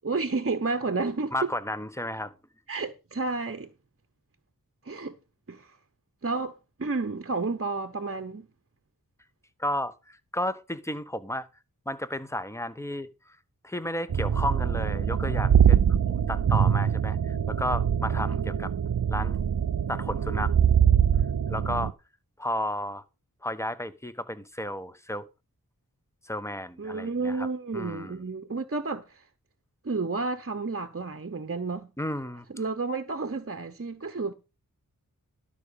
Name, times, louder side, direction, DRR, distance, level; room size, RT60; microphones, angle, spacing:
voice 1, 0.0-1.3 2.7-3.7 4.8-5.2 5.5-5.8 6.2-8.5 26.8-29.2 29.8-31.9 32.5-34.3, right 3 dB, 40° right, 1.0 m, -31 dB
voice 2, 1.3-2.3 9.6-11.5 11.9-13.4 13.6-15.8 16.1-18.7 19.1-19.4 19.9-20.5 21.5-21.9 22.4-23.0 23.4-25.2 26.2-27.5 27.7-28.2 32.0-32.5, left 1 dB, 10° left, 1.1 m, -33 dB
sound 1, 14.1-21.9, right 8 dB, 70° right, 0.7 m, -23 dB
12.0 x 5.0 x 6.9 m
wide cardioid pair, 40°, 36 cm